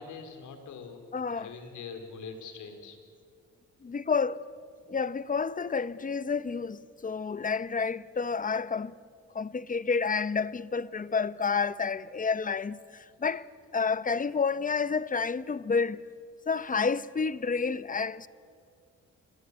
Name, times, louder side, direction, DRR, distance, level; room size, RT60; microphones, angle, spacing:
voice 1, 0.0-1.0 1.3-3.0, left 5 dB, 80° left, 4.4 m, -43 dB
voice 2, 1.1-1.5 3.8-4.5 4.9-8.9 9.3-13.5 13.7-16.0 16.5-18.3, left 5 dB, 25° left, 0.9 m, -30 dB
28.5 x 22.5 x 8.3 m
cardioid pair, 90°, 30 cm